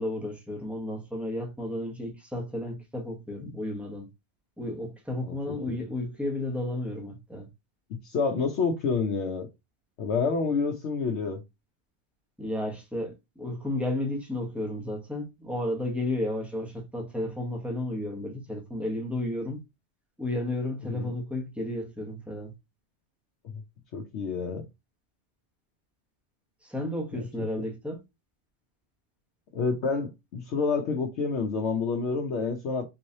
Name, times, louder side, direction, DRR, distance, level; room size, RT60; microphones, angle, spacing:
voice 1, 0.0-4.1 4.6-7.5 12.4-19.6 20.2-22.5 26.6-28.0, left 1 dB, ahead, 0.9 m, -32 dB
voice 2, 5.3-5.8 7.9-9.5 10.0-11.4 20.9-21.1 23.9-24.6 27.2-27.3 29.5-32.9, left 4 dB, 75° left, 0.9 m, -28 dB
3.8 x 3.1 x 2.6 m
omnidirectional pair, 1.2 m